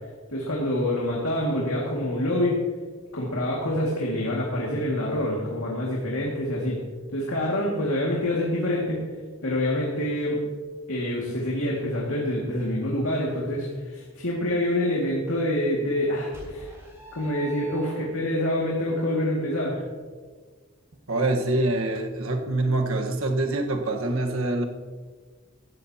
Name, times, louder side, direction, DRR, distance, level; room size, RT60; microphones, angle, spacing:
voice 1, 0.3-2.6 3.1-6.8 7.1-9.0 9.4-10.4 10.9-16.7 17.1-19.8, left 1 dB, 80° left, -3 dB, 2.1 m, -26 dB
sound 1, 16.3-18.4, right 4 dB, 15° right, 3.4 m, -43 dB
voice 2, 21.1-24.6, right 2 dB, 75° right, 3 dB, 1.4 m, -25 dB
15.5 x 13.0 x 2.9 m, 1.5 s
head